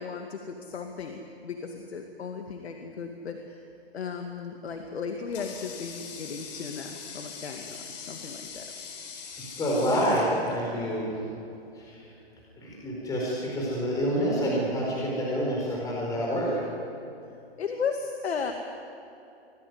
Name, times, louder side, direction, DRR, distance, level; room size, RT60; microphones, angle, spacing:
voice 1, 0.0-3.6 3.9-8.7 17.6-18.5, left 5 dB, 75° left, 4 dB, 2.3 m, -35 dB
Water tap faucet, 4.7-11.2, left 6 dB, 40° left, 4.3 m, -43 dB
voice 2, 9.6-11.2 11.8-12.0 12.6-16.5, equal, 10° left, -4 dB, 4.6 m, -27 dB
25.0 x 18.0 x 9.6 m, 2.8 s
hypercardioid pair, 155°, 32 cm